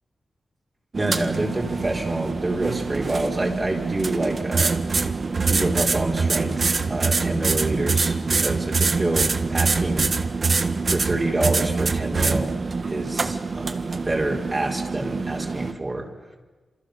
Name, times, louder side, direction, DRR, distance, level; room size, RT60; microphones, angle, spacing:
voice 1, 0.9-4.8 5.5-10.1 10.9-16.1, right 2 dB, 25° right, -1 dB, 4.3 m, -27 dB
sound 1, 0.9-15.7, right 4 dB, 45° right, 1.4 m, -24 dB
28.5 x 27.5 x 6.8 m, 1.3 s
wide cardioid pair, 110°, 0 cm